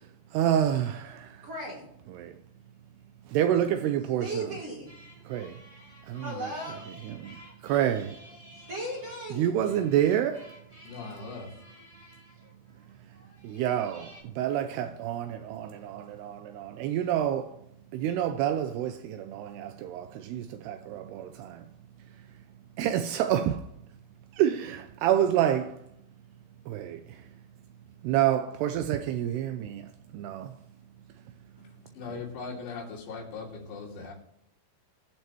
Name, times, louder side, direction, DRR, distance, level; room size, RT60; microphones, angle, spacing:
voice 1, 0.3-1.5 2.1-2.4 3.3-4.6 5.3-5.6 6.1-6.5 7.0-8.2 9.4-10.5 13.4-17.6 17.9-21.7 22.8-23.7 24.3-25.8 26.7-27.2 28.0-30.5, right 10 dB, 80° right, 2.6 m, -28 dB
voice 2, 1.4-1.8 4.2-4.9 6.2-6.8 8.7-9.5, right 1 dB, 40° right, 3.0 m, -36 dB
sound 1, 4.9-14.2, left 1 dB, 10° left, 3.1 m, -53 dB
voice 3, 10.9-11.5 31.6-34.1, left 4 dB, 90° left, 5.2 m, -40 dB
22.0 x 7.7 x 3.1 m
omnidirectional pair, 4.9 m